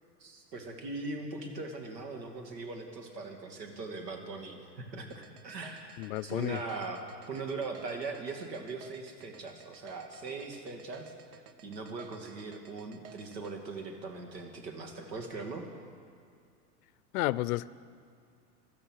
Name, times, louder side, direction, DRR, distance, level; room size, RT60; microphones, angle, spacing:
voice 1, 0.2-11.1 11.6-15.7, right 3 dB, 80° right, 3 dB, 2.6 m, -40 dB
sound 1, 5.1-13.5, right 6 dB, 60° right, 1.1 m, -54 dB
voice 2, 6.0-6.6 17.1-17.7, left 18 dB, 60° left, 19 dB, 0.6 m, -31 dB
17.0 x 12.0 x 6.4 m, 2.3 s
hypercardioid pair, 110°, 49 cm